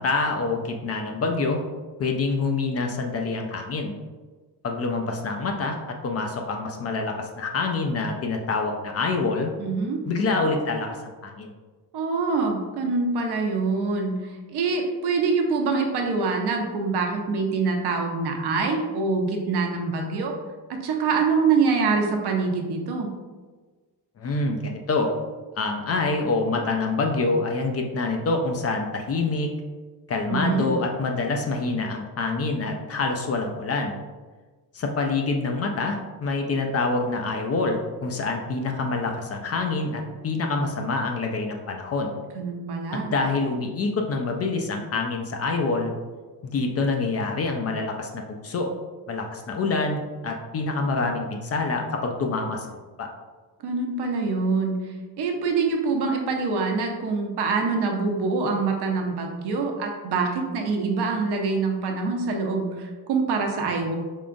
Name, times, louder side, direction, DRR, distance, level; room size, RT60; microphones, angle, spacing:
voice 1, 0.0-1.6 2.0-4.0 4.6-9.5 10.1-11.5 24.2-25.1 25.6-29.5 30.1-34.0 34.7-42.2 43.1-45.9 46.4-48.7 49.1-53.1, left 3 dB, 40° left, 3 dB, 0.4 m, -26 dB
voice 2, 9.6-10.0 11.9-20.3 20.7-23.1 30.3-30.7 42.4-43.1 53.6-54.8 55.2-64.0, right 4 dB, 70° right, 2 dB, 0.8 m, -25 dB
4.7 x 3.6 x 2.5 m, 1.3 s
cardioid pair, 160°, 41 cm